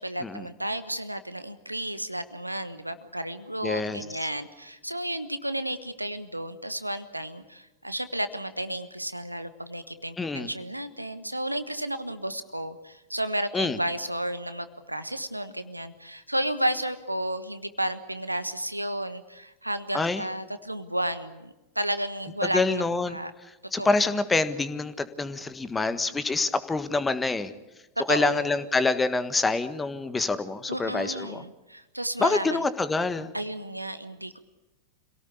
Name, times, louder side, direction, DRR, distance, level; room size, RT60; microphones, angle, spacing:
voice 1, 0.0-23.3 23.8-24.1 28.0-28.5 30.7-32.6 33.3-34.4, right 1 dB, 85° right, 12 dB, 1.3 m, -32 dB
voice 2, 3.6-4.0 10.2-10.5 13.5-13.8 19.9-20.2 22.5-23.2 23.7-27.5 28.1-31.4 32.2-33.3, left 3 dB, 10° left, 12 dB, 1.5 m, -26 dB
27.0 x 18.0 x 8.4 m, 1.1 s
figure-of-eight pair, 90°, 0 cm